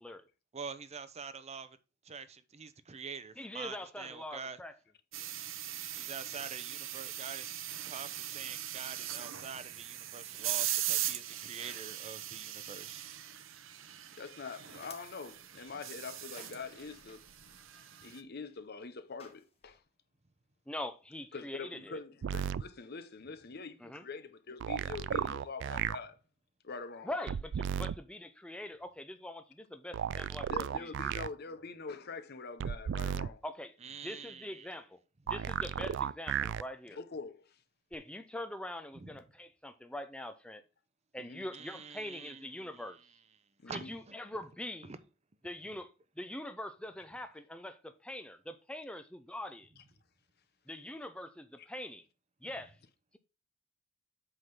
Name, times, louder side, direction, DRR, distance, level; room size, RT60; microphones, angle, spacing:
voice 1, 0.5-1.8 2.0-4.6 5.9-7.5 7.9-13.0 33.8-34.8 39.0-39.2 41.5-42.9 43.7-44.4 44.9-45.0, right 5 dB, 35° right, 0.6 m, -46 dB
voice 2, 3.4-4.7 5.2-5.3 20.7-22.0 23.8-24.0 27.0-30.5 30.8-30.9 33.4-33.7 34.0-35.0 35.3-37.0 37.9-40.6 41.1-43.0 43.7-44.9 45.4-45.9 46.2-49.7 50.7-52.0 52.4-52.7, left 1 dB, 5° left, 0.5 m, -43 dB
sound 1, 5.1-18.2, right 12 dB, 85° right, 0.8 m, -40 dB
voice 3, 14.2-17.5 18.0-19.8 21.3-26.2 26.6-27.1 30.5-33.4 36.9-37.6 41.2-41.5 43.6-43.9, left 4 dB, 55° left, 0.8 m, -44 dB
sound 2, 14.8-19.8, left 4 dB, 30° left, 1.5 m, -60 dB
sound 3, 22.2-22.6 24.6-26.0 27.3-28.0 29.9-31.3 32.6-33.3 35.3-36.6 37.9-38.0, right 8 dB, 65° right, 0.3 m, -34 dB
8.0 x 3.8 x 5.8 m
head